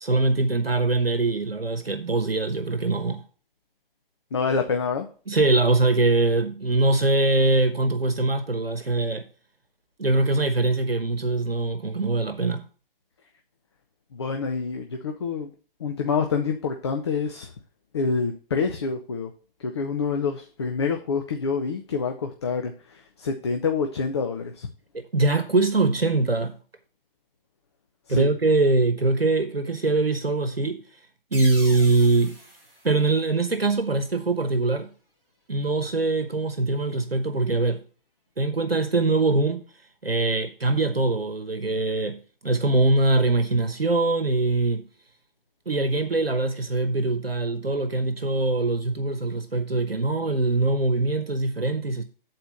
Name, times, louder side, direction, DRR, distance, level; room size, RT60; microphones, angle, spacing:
voice 1, 0.0-3.2 5.3-9.3 10.0-12.6 24.9-26.5 28.1-30.8 31.3-32.4 32.8-34.9 35.5-37.8 38.4-39.6 40.0-44.8 45.7-52.0, right 2 dB, 90° right, 1.0 m, -23 dB
voice 2, 4.3-5.1 14.1-15.5 15.8-17.5 17.9-19.3 19.6-24.7 28.1-28.3, left 5 dB, 30° left, 0.6 m, -27 dB
sound 1, 31.3-33.9, right 1 dB, 10° right, 3.8 m, -42 dB
8.0 x 4.3 x 6.5 m
figure-of-eight pair, 140°, 29 cm